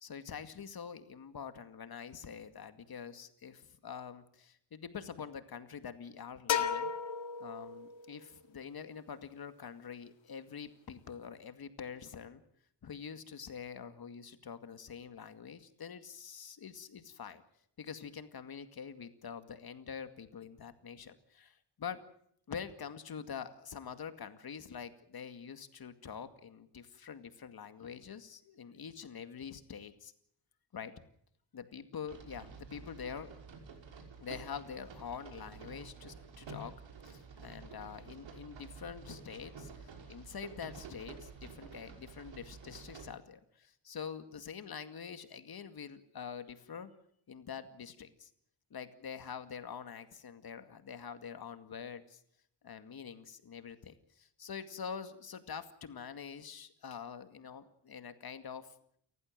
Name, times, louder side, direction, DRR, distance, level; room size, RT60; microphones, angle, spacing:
voice 1, 0.0-6.9 7.4-12.4 12.8-17.4 17.8-22.0 22.5-30.1 30.7-30.9 31.5-33.3 34.2-36.7 37.0-46.9 47.3-48.3 48.7-52.2 52.6-58.7, left 7 dB, 55° left, 10 dB, 2.2 m, -45 dB
sound 1, 6.5-8.2, left 7 dB, 90° left, 2.0 m, -34 dB
sound 2, 32.1-43.1, right 5 dB, 85° right, 6.0 m, -50 dB
29.5 x 15.0 x 7.5 m, 0.69 s
wide cardioid pair, 130°, 44 cm